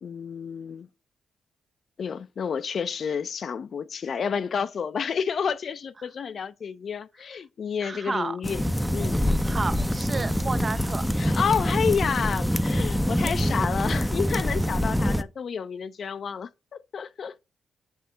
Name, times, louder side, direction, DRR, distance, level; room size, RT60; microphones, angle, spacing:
voice 1, 0.0-0.9 2.0-8.6 8.9-9.2 11.2-17.4, left 6 dB, 60° left, 0.5 m, -30 dB
voice 2, 7.8-8.4 9.4-11.1, right 4 dB, 40° right, 0.6 m, -31 dB
sound 1, 8.4-15.2, equal, ahead, 0.6 m, -25 dB
8.0 x 2.7 x 6.1 m
supercardioid pair, 60°, 0 cm